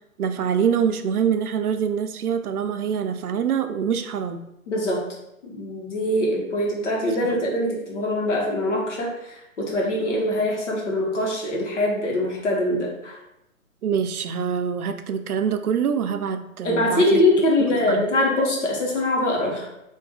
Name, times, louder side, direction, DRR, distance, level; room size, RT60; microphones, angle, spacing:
voice 1, 0.2-4.4 7.2-7.3 13.8-17.2 17.7-18.1, right 7 dB, 85° right, 8 dB, 0.5 m, -25 dB
voice 2, 4.7-5.0 5.4-13.1 16.6-19.8, left 1 dB, 55° left, -2 dB, 1.3 m, -23 dB
3.3 x 2.6 x 3.8 m, 0.86 s
hypercardioid pair, 150°, 43 cm